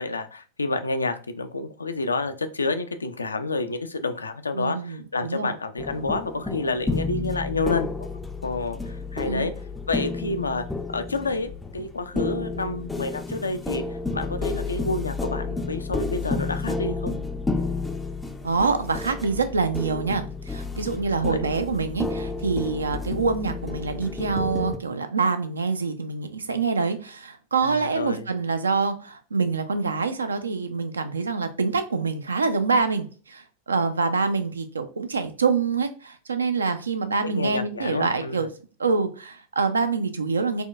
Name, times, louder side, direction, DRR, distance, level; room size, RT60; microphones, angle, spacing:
voice 1, 0.0-8.1 8.4-9.5 9.9-10.7 10.9-17.1 21.2-21.4 27.6-28.3 37.4-38.5, left 3 dB, 75° left, 9 dB, 0.3 m, -29 dB
voice 2, 4.5-5.5 9.3-9.5 18.4-38.5 38.8-40.6, right 4 dB, 75° right, 8 dB, 0.4 m, -26 dB
sound 1, 5.8-24.8, left 3 dB, 5° left, 0.4 m, -31 dB
4.2 x 2.2 x 2.3 m, 0.38 s
figure-of-eight pair, 90°, 0 cm